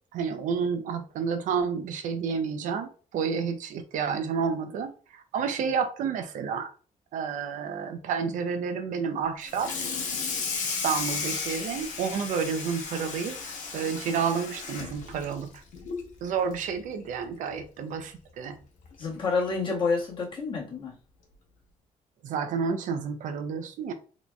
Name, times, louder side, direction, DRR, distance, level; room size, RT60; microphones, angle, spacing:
voice 1, 0.1-6.7 7.1-9.7 10.6-13.4 13.7-15.5 16.2-18.6 22.2-23.9, right 6 dB, 75° right, 0.5 m, -30 dB
Water tap faucet / Sink (filling or washing), 9.4-16.1 16.5-16.7 17.1-17.2 17.6-17.7 18.8-18.9 19.4-19.6, left 5 dB, 75° left, 0.9 m, -34 dB
voice 2, 19.0-20.9, left 4 dB, 40° left, 1.5 m, -28 dB
3.9 x 3.0 x 2.3 m
cardioid pair, 165°, 13 cm